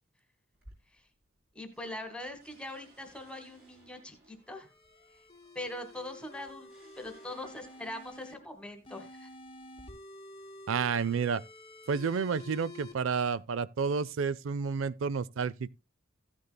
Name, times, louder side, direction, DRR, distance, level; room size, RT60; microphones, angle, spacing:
sound 1, 0.5-1.4 1.7-8.5 9.3-9.9, right 1 dB, 50° right, 6.4 m, -60 dB
voice 1, 1.5-4.7 5.5-6.7 7.0-9.3, left 1 dB, 5° left, 1.4 m, -42 dB
sound 2, 4.4-8.3 8.8-12.9, left 2 dB, 25° left, 0.9 m, -50 dB
voice 2, 10.7-11.4 11.9-15.7, right 5 dB, 70° right, 0.4 m, -30 dB
14.5 x 9.6 x 2.2 m
head